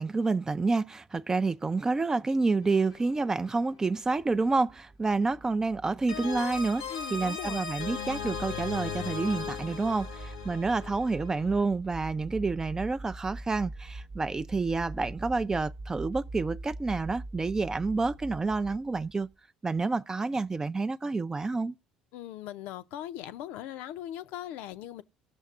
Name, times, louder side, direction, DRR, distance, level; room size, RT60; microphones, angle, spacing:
voice 1, 0.0-19.3 19.6-21.8, right 3 dB, 20° right, 0.4 m, -29 dB
sound 1, 2.6-3.7 6.1-11.7, left 6 dB, 90° left, 0.9 m, -38 dB
sound 2, 4.0-19.3, right 2 dB, 35° right, 0.9 m, -44 dB
voice 2, 6.9-7.6 22.1-25.0, left 12 dB, 70° left, 0.5 m, -39 dB
19.0 x 6.4 x 2.4 m
hypercardioid pair, 60°, 3 cm